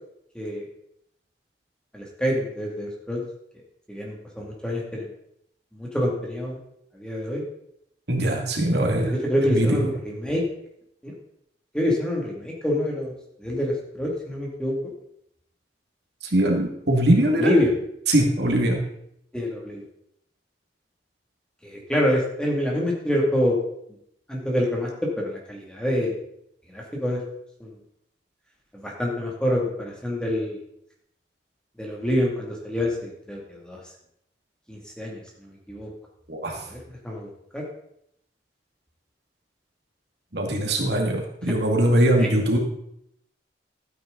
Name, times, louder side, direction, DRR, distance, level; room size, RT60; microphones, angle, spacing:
voice 1, 1.9-3.2 3.9-5.1 5.7-6.6 6.9-7.4 8.9-10.5 11.0-11.1 11.7-13.1 13.4-14.7 17.1-17.7 19.3-19.8 21.6-23.6 24.3-24.9 25.2-26.1 26.7-27.2 27.6-27.7 28.7-30.6 31.8-33.8 34.7-35.9 36.7-36.8 37.0-37.6 42.2-42.3, left 1 dB, 5° left, -2 dB, 2.3 m, -26 dB
voice 2, 8.1-9.1 9.5-9.8 16.3-17.5 18.1-18.8 36.3-36.6 40.3-42.6, right 1 dB, 65° right, 1 dB, 2.1 m, -21 dB
12.5 x 9.2 x 3.9 m, 0.74 s
head